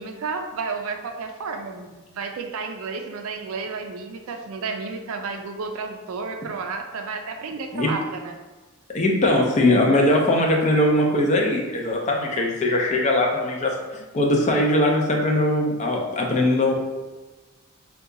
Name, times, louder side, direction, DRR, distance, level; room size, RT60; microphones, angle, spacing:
voice 1, 0.0-8.3, right 4 dB, 75° right, 5 dB, 0.4 m, -32 dB
voice 2, 8.9-13.7 14.1-16.8, left 1 dB, 35° left, 0 dB, 0.5 m, -20 dB
2.8 x 2.3 x 3.7 m, 1.2 s
head